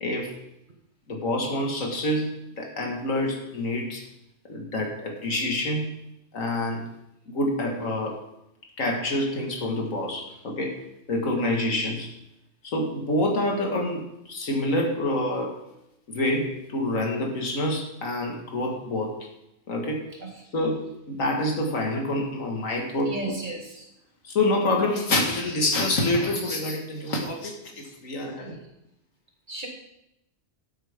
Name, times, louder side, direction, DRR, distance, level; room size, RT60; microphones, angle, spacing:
voice 1, 0.0-0.4 1.1-4.1 4.5-6.0 6.3-6.9 7.3-8.2 8.8-10.8 11.1-12.1 12.6-15.6 16.1-19.3 19.7-20.1 20.5-23.4 24.2-28.6, left 1 dB, 85° left, 1 dB, 2.1 m, -27 dB
voice 2, 23.1-23.8 28.4-28.6 29.5-29.7, right 3 dB, 35° right, 0 dB, 2.0 m, -35 dB
12.0 x 8.2 x 3.6 m, 0.84 s
omnidirectional pair, 1.3 m